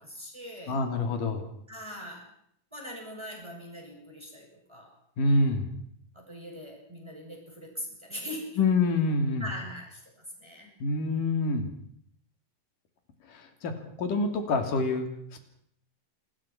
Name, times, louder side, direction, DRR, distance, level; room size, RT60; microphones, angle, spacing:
voice 1, 0.0-0.7 1.7-2.3 2.7-4.9 6.1-8.6 9.4-10.7, equal, 5° right, 0 dB, 6.8 m, -41 dB
voice 2, 0.7-1.5 5.2-5.7 8.6-9.4 10.8-11.7 13.3-13.7 14.0-15.1, left 3 dB, 70° left, 6 dB, 4.4 m, -26 dB
27.0 x 20.5 x 6.1 m, 0.69 s
omnidirectional pair, 4.0 m